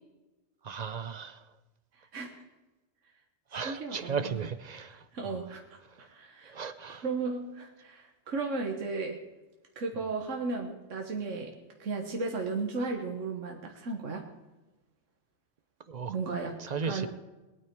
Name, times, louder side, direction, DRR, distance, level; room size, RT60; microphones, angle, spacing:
voice 1, 0.6-1.4 3.5-5.4 6.4-7.0 15.9-16.2 16.6-17.1, right 6 dB, 50° right, 13 dB, 0.5 m, -36 dB
voice 2, 2.0-2.4 3.5-4.4 5.1-5.6 6.0-6.5 7.0-9.2 9.7-11.5 11.8-14.2 16.1-16.5 16.9-17.1, right 4 dB, 70° right, 2 dB, 1.6 m, -35 dB
21.0 x 9.1 x 4.6 m, 1.1 s
omnidirectional pair, 1.3 m